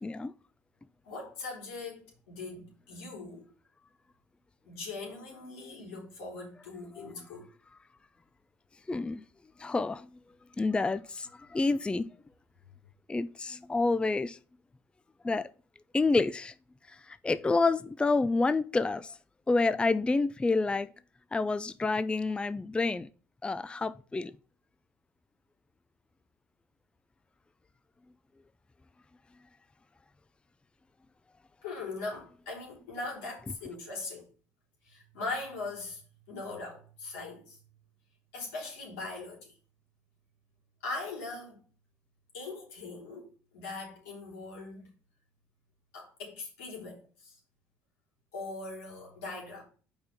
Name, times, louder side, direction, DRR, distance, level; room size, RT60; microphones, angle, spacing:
voice 1, 0.0-0.3 6.9-7.1 8.9-9.2 9.6-10.1 10.6-12.1 13.1-14.4 15.2-15.5 15.9-16.5 16.9-19.2 19.5-20.9 21.3-23.1 23.4-24.4, left 3 dB, 15° left, 0.4 m, -28 dB
voice 2, 1.1-3.4 4.7-7.5 31.6-34.3 34.9-36.0 36.3-37.6 38.3-39.5 40.8-41.6 42.3-44.9 45.9-47.4 48.3-49.6, left 3 dB, 85° left, 3.6 m, -40 dB
5.5 x 4.4 x 5.2 m
supercardioid pair, 75°, 7 cm